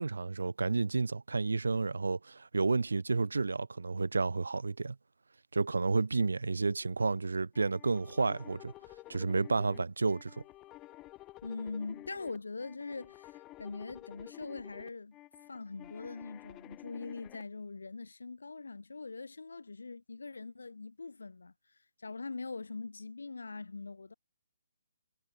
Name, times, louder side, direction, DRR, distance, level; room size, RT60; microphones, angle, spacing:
voice 1, 0.0-5.0 5.5-8.7 9.1-10.3, right 3 dB, 85° right, 0.4 m, -31 dB
sound 1, 7.5-17.4, left 17 dB, 20° left, 1.3 m, -52 dB
voice 2, 11.4-15.2 15.5-21.5 22.0-24.1, left 3 dB, 85° left, 2.5 m, -42 dB
hypercardioid pair, 150°, 0 cm